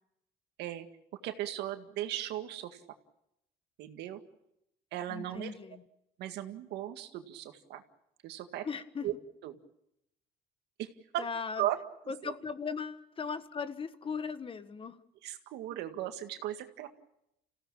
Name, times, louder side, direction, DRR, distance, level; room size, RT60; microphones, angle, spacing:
voice 1, 1.2-2.8 3.8-4.2 4.9-5.5 6.2-7.8 8.2-8.7 9.0-9.1 9.4-9.5 10.8-11.3 11.6-11.8 12.2-12.3 15.2-16.9, right 13 dB, 85° right, 7 dB, 2.0 m, -37 dB
voice 2, 5.1-5.8 8.6-9.1 11.2-11.7 12.1-15.0, left 5 dB, 30° left, 12 dB, 1.3 m, -38 dB
28.0 x 16.5 x 8.7 m, 0.84 s
cardioid pair, 110°, 17 cm